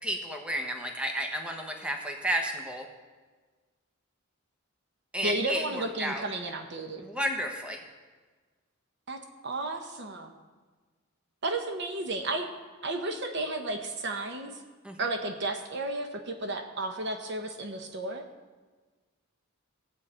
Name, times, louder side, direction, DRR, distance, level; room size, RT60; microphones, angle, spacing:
voice 1, 0.0-2.8 5.1-6.2 7.0-7.8 14.8-15.0, equal, 5° right, 2 dB, 1.1 m, -32 dB
voice 2, 5.2-7.1 9.1-10.3 11.4-12.5 12.8-14.5 15.0-18.2, right 2 dB, 55° right, 5 dB, 1.0 m, -33 dB
16.5 x 8.2 x 4.4 m, 1.4 s
head